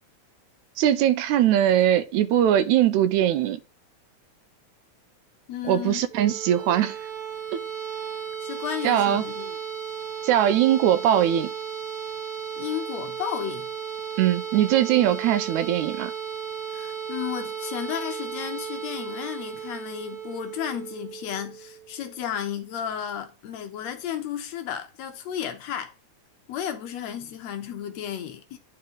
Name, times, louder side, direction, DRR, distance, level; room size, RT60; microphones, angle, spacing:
voice 1, 0.8-3.6 5.6-7.0 7.5-7.6 8.8-9.2 10.2-11.5 14.2-16.1, right 11 dB, 85° right, 2.0 m, -21 dB
voice 2, 5.5-6.1 8.4-9.6 12.6-13.7 16.7-25.9 26.5-28.6, left 9 dB, 70° left, 2.0 m, -33 dB
sound 1, 6.1-21.9, right 7 dB, 40° right, 1.5 m, -35 dB
9.7 x 4.3 x 3.7 m
omnidirectional pair, 3.4 m